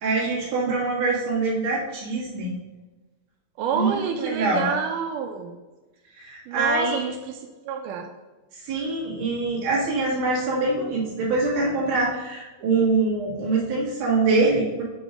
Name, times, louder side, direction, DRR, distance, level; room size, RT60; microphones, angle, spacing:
voice 1, 0.0-2.5 3.7-3.9 4.2-4.7 6.2-7.0 8.5-14.8, right 3 dB, 55° right, -6 dB, 3.0 m, -24 dB
voice 2, 3.6-5.5 6.5-8.1, right 7 dB, 85° right, 4 dB, 1.9 m, -28 dB
8.7 x 3.0 x 4.9 m, 1.2 s
omnidirectional pair, 4.2 m